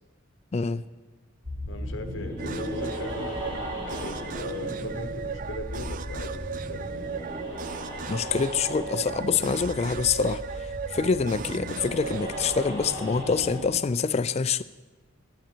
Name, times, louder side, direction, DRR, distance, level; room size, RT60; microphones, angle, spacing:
voice 1, 0.5-0.8 8.1-10.4 10.9-14.6, left 5 dB, 35° left, 0.3 m, -26 dB
sound 1, 1.4-13.6, left 1 dB, 25° right, 3.4 m, -36 dB
voice 2, 1.7-6.9, left 2 dB, 70° left, 1.0 m, -40 dB
sound 2, 2.4-12.7, right 6 dB, 40° right, 0.4 m, -36 dB
13.0 x 8.9 x 4.5 m
head